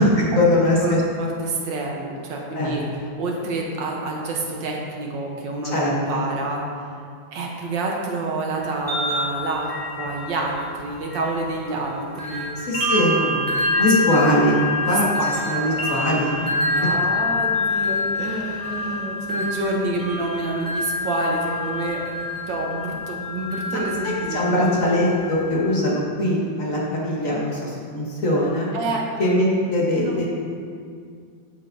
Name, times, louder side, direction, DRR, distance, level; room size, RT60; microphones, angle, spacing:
voice 1, 0.0-1.0 2.5-2.8 5.7-6.2 12.6-13.5 13.8-14.6 14.9-15.1 15.5-16.3 24.3-28.7 29.2-30.3, left 1 dB, 50° left, -4 dB, 1.5 m, -21 dB
voice 2, 0.6-6.6 7.3-12.5 13.8-13.9 14.8-15.9 16.7-22.0 22.5-24.5 28.7-29.1 30.0-30.3, right 2 dB, 75° right, 0 dB, 1.7 m, -28 dB
sound 1, 8.6-11.9 12.2-25.6, left 2 dB, 5° right, 1.7 m, -27 dB
8.9 x 8.4 x 2.7 m, 2.2 s
omnidirectional pair, 2.1 m